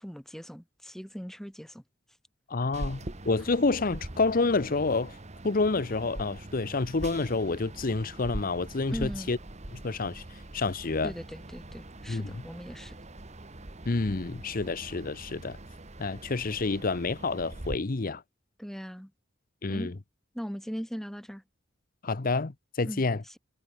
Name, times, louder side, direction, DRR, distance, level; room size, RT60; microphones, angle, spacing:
voice 1, 0.0-1.8 8.9-9.3 11.0-13.0 18.6-19.1 19.7-19.9 20.3-21.4 22.8-23.4, equal, ahead, 3.9 m, -39 dB
voice 2, 2.5-5.2 5.4-9.4 9.8-10.2 10.5-11.1 12.1-12.4 13.9-15.6 16.0-18.2 19.6-19.9 22.0-23.2, left 3 dB, 50° left, 0.8 m, -28 dB
sound 1, 2.7-17.8, right 1 dB, 35° right, 1.7 m, -43 dB
head